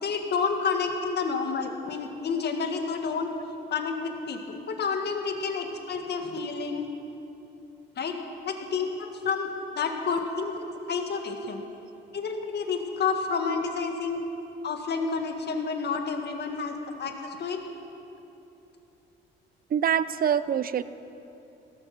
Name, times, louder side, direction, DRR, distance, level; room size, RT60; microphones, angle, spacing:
voice 1, 0.0-3.3 3.7-6.9 8.0-8.1 8.4-9.5 9.8-11.6 12.1-14.2 14.6-17.6, left 5 dB, 55° left, 4 dB, 1.9 m, -30 dB
voice 2, 19.7-20.8, right 8 dB, 45° right, 15 dB, 0.6 m, -26 dB
17.0 x 14.0 x 6.0 m, 3.0 s
cardioid pair, 90°, 20 cm